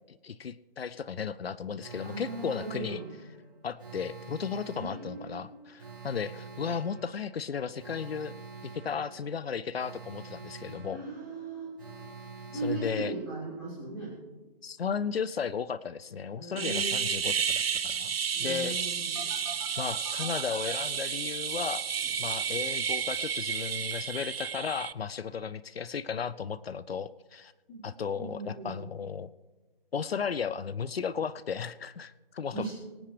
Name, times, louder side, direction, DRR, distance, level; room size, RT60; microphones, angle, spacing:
voice 1, 0.1-3.0 3.6-8.3 8.6-11.0 12.5-13.1 14.6-18.8 19.8-21.8 22.2-27.5 27.8-29.3 29.9-32.7, left 6 dB, 85° left, 17 dB, 0.6 m, -35 dB
Alarm, 1.8-13.7 19.1-20.7, right 4 dB, 20° right, 2.1 m, -47 dB
voice 2, 2.0-3.1 4.7-5.4 10.9-11.7 12.5-14.1 16.3-17.0 18.3-19.3 27.7-27.8 28.1-28.7 32.5-32.7, right 2 dB, 10° left, -11 dB, 3.8 m, -38 dB
sound 1, 16.6-24.9, right 7 dB, 80° right, 0.5 m, -31 dB
24.5 x 8.6 x 3.3 m, 1.3 s
figure-of-eight pair, 175°, 30 cm